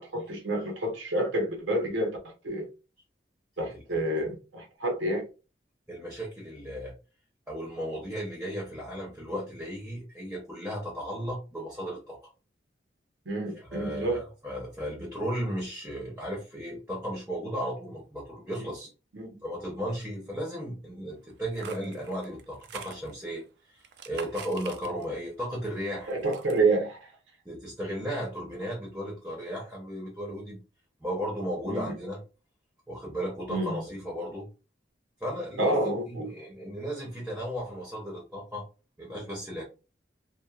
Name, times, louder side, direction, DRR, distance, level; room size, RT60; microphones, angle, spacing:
voice 1, 0.0-2.2 2.4-2.7 3.6-5.3 13.3-14.2 18.6-18.7 19.1-19.3 26.1-27.1 31.7-31.9 33.5-33.8 35.6-36.3, right 2 dB, 85° right, 0.7 m, -28 dB
voice 2, 3.7-4.3 5.9-6.9 7.5-12.2 13.5-18.9 19.4-26.1 27.4-30.6 31.0-32.2 32.9-34.5 35.2-38.6 39.0-39.6, equal, 10° right, 0.6 m, -35 dB
sound 1, 21.3-23.4 23.8-25.3 25.7-26.6, right 7 dB, 60° right, 0.3 m, -45 dB
2.9 x 2.1 x 2.3 m
head